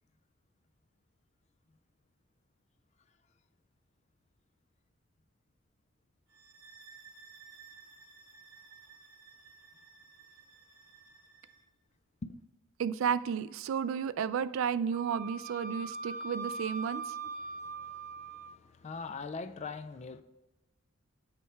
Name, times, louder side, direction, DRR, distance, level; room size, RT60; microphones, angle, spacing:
sound 1, 6.3-11.7, right 5 dB, 60° right, 1.7 m, -56 dB
voice 1, 12.8-17.2, right 7 dB, 80° right, 0.3 m, -32 dB
Wind instrument woodwind instrument, 14.9-18.6, right 3 dB, 40° right, 0.7 m, -41 dB
voice 2, 17.4-20.2, left 4 dB, 35° left, 0.3 m, -43 dB
8.2 x 3.3 x 4.5 m
head